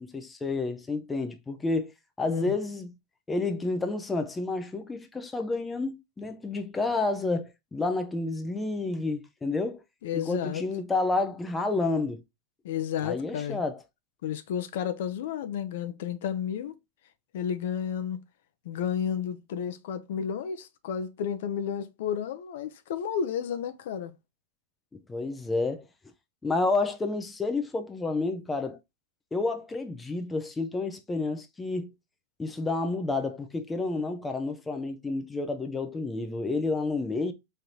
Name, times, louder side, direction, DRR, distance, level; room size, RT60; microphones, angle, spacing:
voice 1, 0.0-1.9 2.2-2.9 3.3-9.8 10.1-12.2 13.0-13.8 25.1-25.8 26.4-28.8 29.3-31.9 32.4-37.3, left 3 dB, 10° left, 0.5 m, -30 dB
voice 2, 10.0-10.6 12.6-13.6 14.2-16.8 17.3-18.2 18.6-24.1, left 8 dB, 60° left, 0.6 m, -32 dB
3.8 x 3.3 x 2.8 m
supercardioid pair, 165°, 0 cm